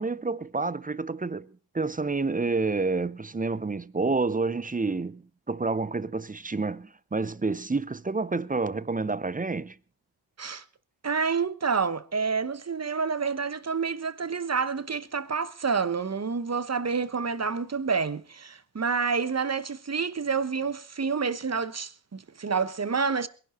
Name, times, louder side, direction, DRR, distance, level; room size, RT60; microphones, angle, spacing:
voice 1, 0.0-1.5 1.7-9.8, right 3 dB, 15° right, 0.7 m, -29 dB
voice 2, 11.0-23.3, right 5 dB, 35° right, 1.1 m, -28 dB
21.0 x 11.5 x 4.3 m
cardioid pair, 65°, 48 cm